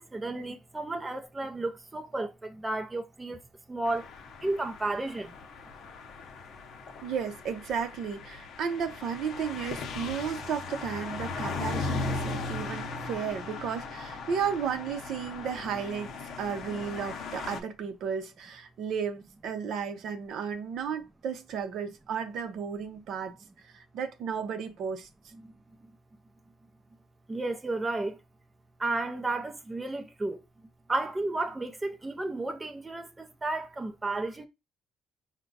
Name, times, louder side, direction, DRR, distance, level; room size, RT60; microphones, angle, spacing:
voice 1, 0.0-3.4 3.7-4.1 4.4-5.3 25.4-25.5 27.3-28.2 28.8-30.4 30.9-34.5, right 2 dB, 15° right, 0.5 m, -32 dB
sound 1, 3.8-17.6, left 3 dB, 55° left, 0.7 m, -38 dB
voice 2, 7.0-23.3 23.7-25.1, right 7 dB, 60° right, 0.6 m, -34 dB
4.6 x 2.2 x 3.9 m
cardioid pair, 130°, 0 cm